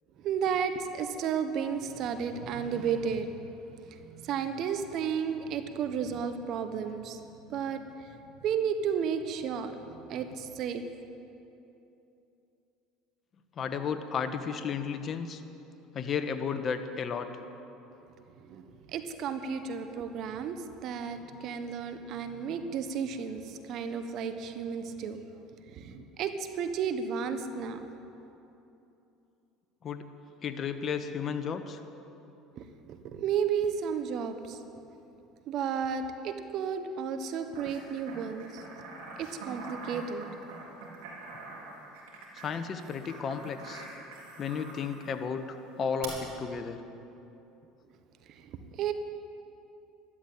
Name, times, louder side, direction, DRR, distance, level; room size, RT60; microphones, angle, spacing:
voice 1, 0.2-3.5 3.9-7.2 7.5-8.1 8.4-10.8 18.4-25.2 25.7-27.9 32.6-34.8 35.5-38.6 39.2-40.2 48.3-48.9, right 7 dB, 55° right, 9 dB, 1.1 m, -33 dB
voice 2, 13.6-15.4 15.9-17.3 29.8-30.0 30.4-31.8 42.4-43.8 44.4-46.8, left 6 dB, 40° left, 8 dB, 1.2 m, -33 dB
sound 1, 37.5-45.2 46.0-46.1, right 3 dB, 80° right, 3.9 m, -45 dB
12.5 x 12.5 x 8.5 m, 2.9 s
supercardioid pair, 95°, 0 cm